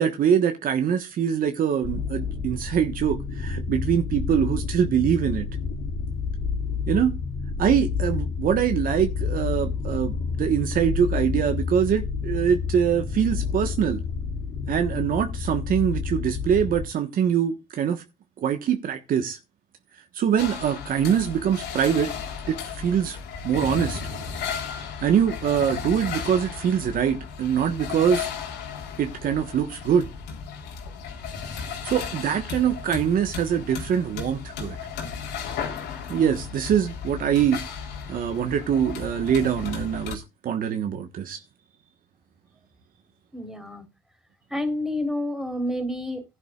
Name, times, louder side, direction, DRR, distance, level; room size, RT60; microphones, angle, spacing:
voice 1, 0.0-5.5 6.9-7.2 7.6-14.0 14.7-18.0 18.4-19.4 20.1-22.1 22.5-23.2 23.4-24.0 25.0-28.3 29.0-30.1 31.6-34.8 36.1-37.7 38.1-41.4, right 8 dB, 55° right, 1.4 m, -24 dB
sound 1, 1.8-16.9, left 5 dB, 55° left, 3.6 m, -29 dB
sound 2, 20.4-40.2, left 6 dB, 85° left, 3.7 m, -35 dB
voice 2, 43.3-43.9 44.5-46.2, left 1 dB, ahead, 4.0 m, -29 dB
16.5 x 11.0 x 2.4 m
cardioid pair, 110°, 17 cm